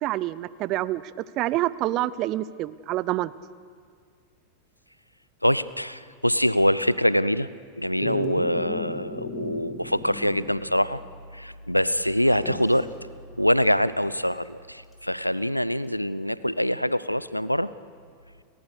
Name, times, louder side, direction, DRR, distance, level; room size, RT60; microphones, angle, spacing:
voice 1, 0.0-3.3, right 15 dB, 40° right, 19 dB, 0.5 m, -27 dB
voice 2, 5.4-7.5 7.8-11.0 11.3-12.9 13.4-17.7, equal, 90° left, 18 dB, 0.5 m, -24 dB
Dog, 8.0-10.7 11.0-11.1 12.2-12.8 14.9-15.0, left 1 dB, 15° left, 3.1 m, -35 dB
30.0 x 14.0 x 6.6 m, 2.1 s
figure-of-eight pair, 90°, 0 cm